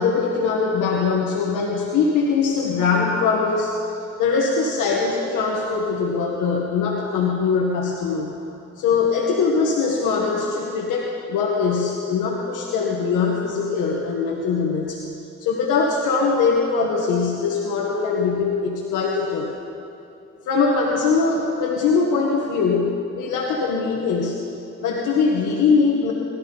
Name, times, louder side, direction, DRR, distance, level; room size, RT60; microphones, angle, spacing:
voice 1, 0.0-3.7 4.2-8.3 8.8-15.0 15.4-19.5 20.5-24.4 24.8-26.1, left 5 dB, 85° left, -2 dB, 1.5 m, -22 dB
22.5 x 13.0 x 4.0 m, 2.7 s
cardioid pair, 90°, 30 cm